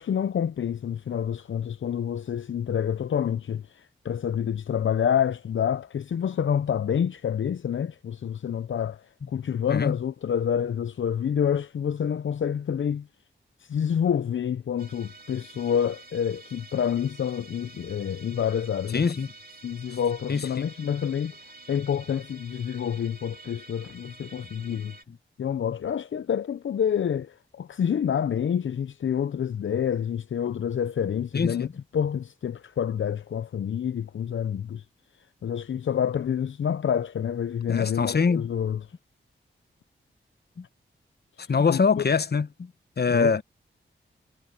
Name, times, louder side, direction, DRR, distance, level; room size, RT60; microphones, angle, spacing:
voice 1, 0.0-13.1 13.6-19.0 19.6-21.3 21.7-24.9 25.4-31.7 31.9-34.8 35.4-38.9 41.4-42.0 43.1-43.4, left 8 dB, 70° left, 0.7 m, -28 dB
Musical instrument, 14.8-25.0, right 2 dB, 45° right, 2.9 m, -49 dB
voice 2, 18.9-19.3 20.3-20.7 31.3-31.7 37.7-38.5 40.6-40.7 41.5-42.7 43.0-43.4, left 5 dB, 50° left, 1.1 m, -24 dB
cardioid pair, 45°, 21 cm